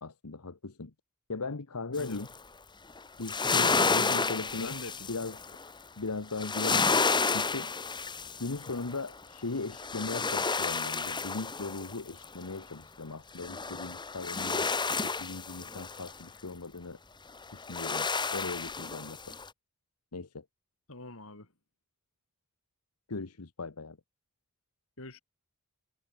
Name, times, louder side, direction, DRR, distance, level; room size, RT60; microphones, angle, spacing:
voice 1, 0.0-0.9 1.3-2.3 3.2-4.8 5.1-5.4 6.0-6.9 7.3-7.7 8.4-14.7 15.0-17.0 17.5-19.2 20.1-20.4 23.1-24.0, left 3 dB, 90° left, 1.2 m, -38 dB
sound 1, 2.0-2.4 3.0-5.7 6.3-9.1 9.5-12.5 13.4-16.1 17.4-19.5, left 4 dB, 20° left, 1.5 m, -31 dB
voice 2, 3.6-4.3 4.6-5.1 20.9-21.5 25.0-25.2, left 2 dB, 65° left, 5.1 m, -43 dB
head